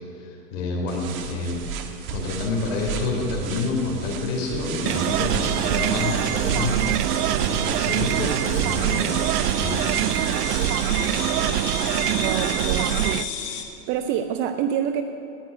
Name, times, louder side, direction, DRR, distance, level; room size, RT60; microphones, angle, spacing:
voice 1, 0.2-1.8 2.1-6.8 7.1-10.4, left 3 dB, 55° left, -1 dB, 3.8 m, -28 dB
sound 1, 0.9-11.5, right 7 dB, 65° right, 1.7 m, -35 dB
sound 2, 4.8-13.6, left 7 dB, 80° left, 1.9 m, -34 dB
sound 3, 4.9-13.3, right 14 dB, 80° right, 0.5 m, -24 dB
voice 2, 12.1-13.2 13.9-15.0, right 9 dB, 30° right, 8 dB, 0.4 m, -27 dB
18.0 x 6.2 x 9.6 m, 2.8 s
hypercardioid pair, 125°, 45 cm